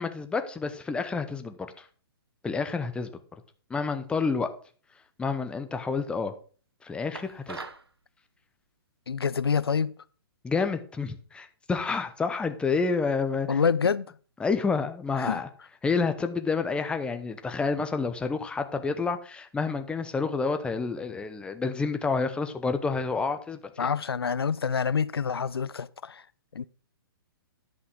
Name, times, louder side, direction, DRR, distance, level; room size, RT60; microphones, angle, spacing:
voice 1, 0.0-1.9 2.4-3.1 3.7-4.5 5.2-6.3 6.8-7.6 10.4-13.6 14.4-15.5 15.8-23.9, left 4 dB, 10° left, 0.9 m, -29 dB
sound 1, 7.1-7.9, right 3 dB, 90° right, 1.1 m, -40 dB
voice 2, 9.1-9.9 13.5-14.1 15.2-15.4 23.8-26.2 26.5-26.6, left 6 dB, 85° left, 0.4 m, -27 dB
10.5 x 5.5 x 4.9 m
hypercardioid pair, 130°, 13 cm